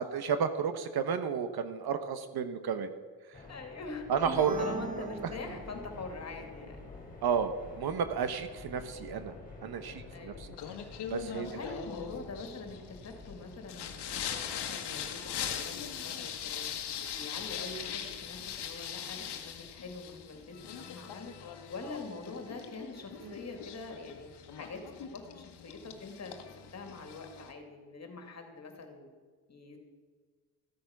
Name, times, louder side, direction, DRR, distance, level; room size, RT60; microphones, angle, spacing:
voice 1, 0.0-2.9 4.1-4.6 5.0-5.1 7.2-9.3 9.6-10.5 11.1-11.5 23.2-23.4, right 7 dB, 55° right, 10 dB, 1.1 m, -32 dB
sound 1, 3.3-21.7, left 3 dB, 20° left, 3.9 m, -51 dB
voice 2, 3.5-4.0 4.3-6.8 10.1-10.4 11.3-16.7 17.1-21.3 21.7-24.9 25.1-29.1 29.5-29.8, left 3 dB, 35° left, 4 dB, 2.7 m, -44 dB
sound 2, 4.2-6.1, right 3 dB, 15° right, 1.4 m, -39 dB
Singing, 10.6-27.5, left 8 dB, 60° left, 1.6 m, -41 dB
14.5 x 8.7 x 6.0 m, 1.5 s
cardioid pair, 95°, 45 cm